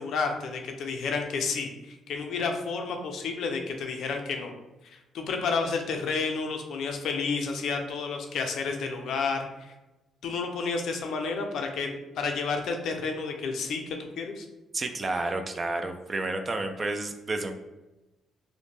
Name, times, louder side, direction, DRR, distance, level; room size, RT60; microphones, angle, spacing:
voice 1, 0.0-4.5 4.8-9.7 10.2-14.5, left 4 dB, 70° left, 4 dB, 0.4 m, -31 dB
voice 2, 14.7-17.5, right 2 dB, 35° right, 6 dB, 0.3 m, -30 dB
2.5 x 2.1 x 3.2 m, 1.0 s
cardioid pair, 90°, 0 cm